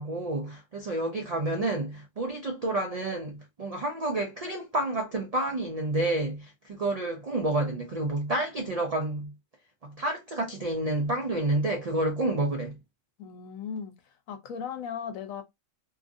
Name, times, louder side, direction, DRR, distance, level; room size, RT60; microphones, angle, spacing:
voice 1, 0.0-9.3 9.8-12.8, right 2 dB, 65° right, 0.3 m, -29 dB
voice 2, 13.2-15.4, left 7 dB, 85° left, 1.1 m, -37 dB
2.8 x 2.5 x 2.5 m
omnidirectional pair, 1.4 m